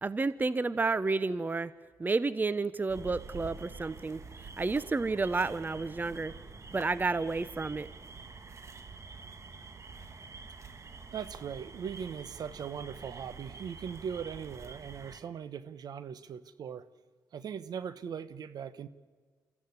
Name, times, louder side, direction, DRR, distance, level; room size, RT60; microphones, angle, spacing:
voice 1, 0.0-1.7 2.0-4.2 4.6-6.3 6.7-7.9, right 3 dB, 25° right, 17 dB, 0.8 m, -30 dB
sound 1, 2.9-15.2, right 4 dB, 40° right, 1.8 m, -47 dB
voice 2, 11.1-16.9 17.3-18.9, right 7 dB, 60° right, 15 dB, 1.1 m, -40 dB
26.5 x 14.0 x 9.6 m, 1.5 s
supercardioid pair, 55°, 7 cm